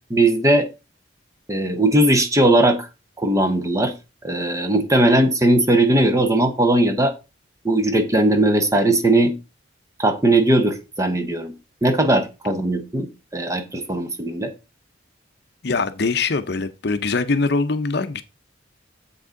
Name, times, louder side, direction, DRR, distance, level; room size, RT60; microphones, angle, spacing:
voice 1, 0.1-0.7 1.5-2.9 3.2-3.9 4.2-7.1 7.6-9.3 10.0-11.5 11.8-14.5, right 1 dB, 15° right, 0.9 m, -18 dB
voice 2, 15.6-18.2, left 3 dB, 55° left, 0.7 m, -22 dB
7.7 x 6.1 x 3.8 m
head